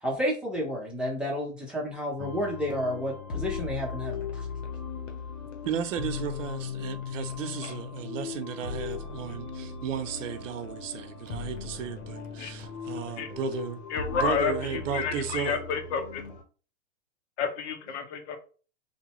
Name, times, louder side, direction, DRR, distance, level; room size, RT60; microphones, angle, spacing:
voice 1, 0.0-4.4, equal, ahead, 0.7 m, -31 dB
sound 1, 2.2-16.4, left 6 dB, 90° left, 0.8 m, -38 dB
voice 2, 5.6-13.8 14.1-15.6, right 8 dB, 75° right, 0.6 m, -34 dB
voice 3, 13.9-16.2 17.4-18.4, left 6 dB, 60° left, 0.7 m, -30 dB
2.6 x 2.2 x 2.9 m
hypercardioid pair, 130°, 38 cm